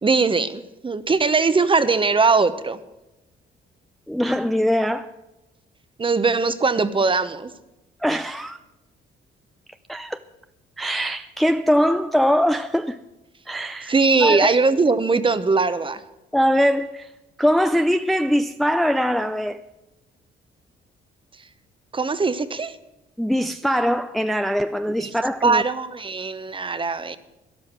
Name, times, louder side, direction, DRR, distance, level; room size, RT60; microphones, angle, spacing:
voice 1, 0.0-2.8 6.0-7.5 13.9-16.0 21.9-22.7 25.0-25.1 25.4-27.2, right 4 dB, 25° right, 1.0 m, -20 dB
voice 2, 4.1-5.1 8.0-8.6 9.9-10.2 10.8-13.0 13.5-13.9 14.2-14.6 16.3-17.1 17.4-19.6 23.2-25.6, equal, ahead, 0.5 m, -22 dB
13.0 x 10.5 x 6.1 m
cardioid pair, 90°, 20 cm